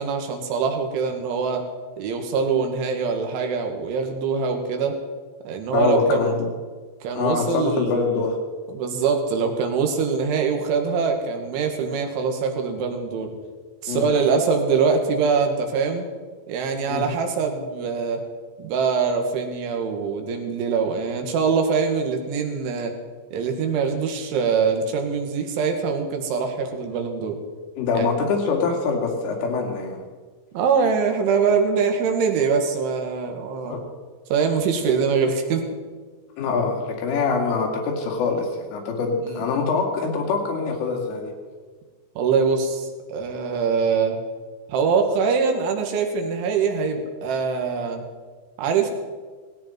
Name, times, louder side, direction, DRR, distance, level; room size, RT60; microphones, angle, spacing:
voice 1, 0.0-1.7 2.0-5.0 5.4-6.3 7.0-8.3 8.7-13.4 13.8-16.1 16.5-18.2 18.6-23.0 23.3-27.4 27.9-28.1 30.5-33.8 34.3-35.7 39.3-39.4 42.2-44.2 44.7-48.0 48.6-48.9, right 5 dB, 75° right, 4 dB, 4.2 m, -23 dB
voice 2, 5.7-6.5 7.2-8.4 13.9-14.0 16.9-17.0 27.8-30.0 33.7-33.8 36.4-41.3, left 4 dB, 90° left, 1 dB, 5.1 m, -24 dB
19.0 x 17.0 x 4.5 m, 1.4 s
omnidirectional pair, 5.5 m